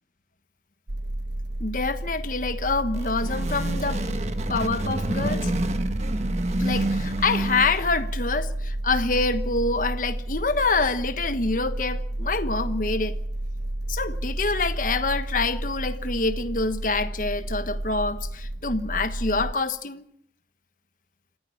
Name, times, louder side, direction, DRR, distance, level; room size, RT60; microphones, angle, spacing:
sound 1, 0.9-19.5, right 1 dB, 75° right, 1.2 m, -31 dB
voice 1, 1.6-4.0 4.5-5.5 6.6-13.2 13.9-20.0, left 3 dB, 50° left, 1.3 m, -26 dB
sound 2, 2.8-8.1, right 1 dB, 40° right, 1.5 m, -29 dB
27.0 x 15.0 x 7.2 m
head